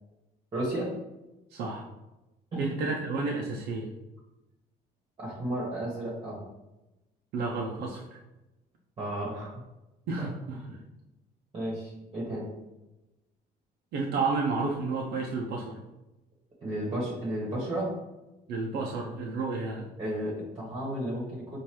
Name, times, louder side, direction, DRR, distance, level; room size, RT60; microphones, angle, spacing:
voice 1, 0.5-0.9 2.5-2.7 5.2-6.4 9.0-9.5 10.2-10.3 11.5-12.5 16.6-17.9 20.0-21.6, right 1 dB, 30° right, -5 dB, 1.1 m, -33 dB
voice 2, 1.5-1.8 2.6-3.9 7.3-8.1 10.1-10.6 13.9-15.8 18.5-19.9, right 3 dB, 75° right, -1 dB, 0.6 m, -31 dB
4.7 x 2.6 x 2.9 m, 0.99 s
cardioid pair, 110°, 17 cm